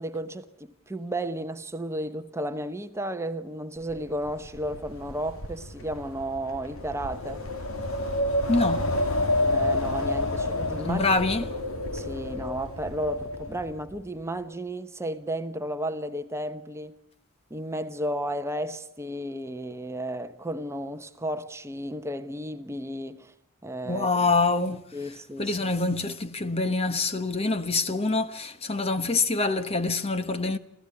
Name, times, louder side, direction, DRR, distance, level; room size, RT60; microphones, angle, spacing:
voice 1, 0.0-7.4 9.4-11.3 11.9-16.9 17.5-23.3 23.6-24.1 24.9-25.6, right 1 dB, 10° right, 0.9 m, -33 dB
Wind, 3.9-14.0, left 1 dB, 75° left, 2.9 m, -29 dB
voice 2, 8.5-8.9 10.8-11.4 23.9-24.8 25.4-30.6, left 3 dB, 25° left, 1.1 m, -25 dB
27.0 x 15.5 x 9.8 m
head